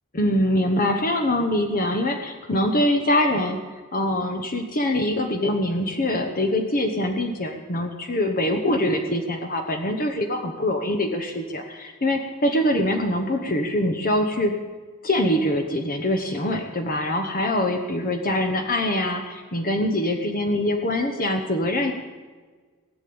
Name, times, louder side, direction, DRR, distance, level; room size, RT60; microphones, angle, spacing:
voice 1, 0.1-3.6 3.9-14.6 15.0-21.9, left 1 dB, 40° left, 4 dB, 1.1 m, -24 dB
18.5 x 7.0 x 9.5 m, 1.5 s
head